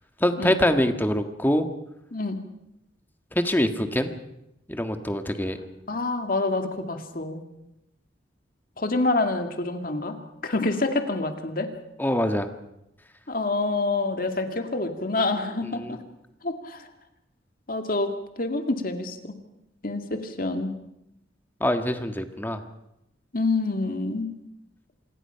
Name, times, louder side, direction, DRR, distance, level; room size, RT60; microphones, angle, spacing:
voice 1, 0.2-1.7 3.3-4.1 4.7-5.6 12.0-12.5 15.8-16.0 21.6-22.6, left 1 dB, 10° left, 7 dB, 1.6 m, -24 dB
voice 2, 5.9-7.4 8.8-10.2 10.4-11.7 13.3-16.0 16.4-16.9 17.7-19.4 19.8-20.7 23.3-24.3, left 2 dB, 50° left, 6 dB, 2.2 m, -27 dB
27.0 x 21.0 x 5.8 m, 0.85 s
head